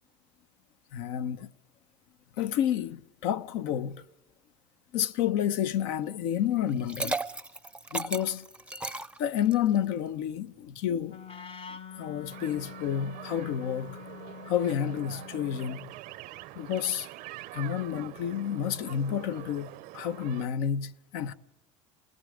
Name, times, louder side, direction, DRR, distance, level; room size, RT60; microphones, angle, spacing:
voice 1, 0.9-1.5 2.4-4.0 4.9-7.2 7.9-8.4 9.2-11.2 12.0-14.0 14.5-15.9 16.5-17.1 17.5-21.3, left 9 dB, 75° left, 1.0 m, -30 dB
Liquid, 6.7-9.8, right 2 dB, 5° right, 0.6 m, -35 dB
Wind instrument woodwind instrument, 11.0-15.9, left 7 dB, 35° left, 0.8 m, -46 dB
sound 1, 12.3-20.5, right 16 dB, 65° right, 0.7 m, -45 dB
27.5 x 20.0 x 5.0 m
supercardioid pair, 95°, 16 cm